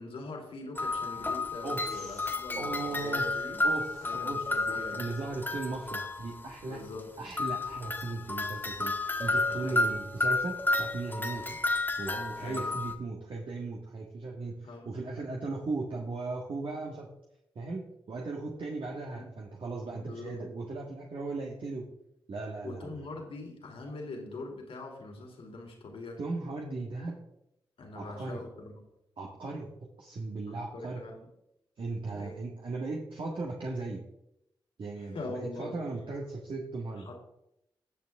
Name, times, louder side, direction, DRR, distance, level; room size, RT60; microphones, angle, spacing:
voice 1, 0.0-3.7 4.0-5.0 6.7-7.1 9.5-10.0 11.4-11.6 12.4-12.8 14.6-14.9 19.1-19.3 19.9-20.5 22.6-26.2 27.8-28.7 30.5-31.3 32.1-32.3 35.0-35.8 36.9-37.2, left 2 dB, 75° left, 1 dB, 3.1 m, -42 dB
sound 1, 0.8-6.4 7.3-12.9, left 2 dB, 20° left, 2.0 m, -31 dB
voice 2, 1.6-3.3 3.6-6.8 7.2-11.4 12.0-17.1 17.5-21.9 22.3-22.9 26.2-27.2 27.9-28.4 29.2-29.7 30.0-31.0 31.8-34.0 34.8-37.1, right 3 dB, 65° right, -1 dB, 1.7 m, -37 dB
18.0 x 6.4 x 3.6 m, 0.83 s
cardioid pair, 50°, 9 cm